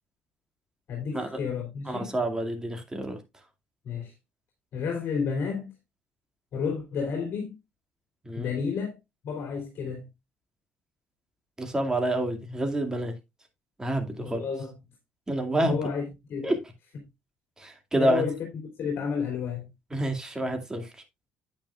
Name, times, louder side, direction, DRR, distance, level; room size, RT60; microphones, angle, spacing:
voice 1, 0.9-2.1 3.8-4.1 4.7-5.7 6.5-7.6 8.3-9.0 9.2-10.1 14.2-14.8 15.6-16.5 17.9-18.5 18.8-19.7, left 6 dB, 60° left, 3.1 m, -31 dB
voice 2, 1.9-3.2 8.2-8.5 11.6-13.1 13.8-14.4 15.3-15.8 16.4-16.6 17.6-18.2 19.9-20.9, right 1 dB, 15° right, 2.3 m, -28 dB
9.0 x 9.0 x 2.4 m
cardioid pair, 120°, 4 cm